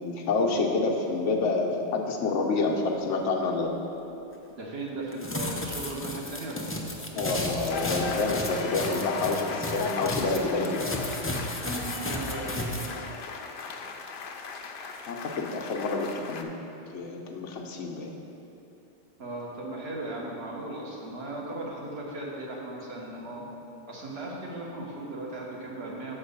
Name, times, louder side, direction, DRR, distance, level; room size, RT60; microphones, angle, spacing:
voice 1, 0.0-3.8 7.1-10.9 15.1-16.5 16.8-18.1, left 3 dB, 90° left, 1 dB, 1.1 m, -28 dB
voice 2, 4.6-6.9 11.6-12.8 19.2-23.5 23.9-26.1, right 2 dB, 60° right, -3 dB, 1.4 m, -37 dB
sound 1, 5.1-10.4 10.6-12.9, left 1 dB, 20° left, 0.3 m, -33 dB
sound 2, 7.7-16.4, left 5 dB, 60° left, 0.6 m, -36 dB
6.4 x 4.7 x 6.7 m, 2.9 s
omnidirectional pair, 1.2 m